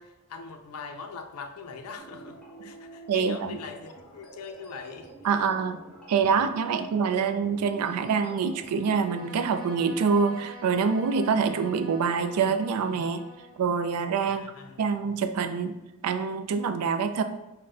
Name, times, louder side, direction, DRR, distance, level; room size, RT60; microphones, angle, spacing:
voice 1, 0.0-5.4 14.2-15.1, left 4 dB, 80° left, 6 dB, 0.4 m, -42 dB
sound 1, 2.0-9.0, right 2 dB, 5° left, 0.9 m, -48 dB
voice 2, 3.1-3.6 5.2-5.8 6.1-13.2 13.6-14.5 14.8-15.8 16.0-17.2, right 5 dB, 80° right, 9 dB, 0.3 m, -26 dB
Bowed string instrument, 8.7-13.6, right 1 dB, 65° right, 0.7 m, -45 dB
4.1 x 2.1 x 3.5 m, 1.0 s
head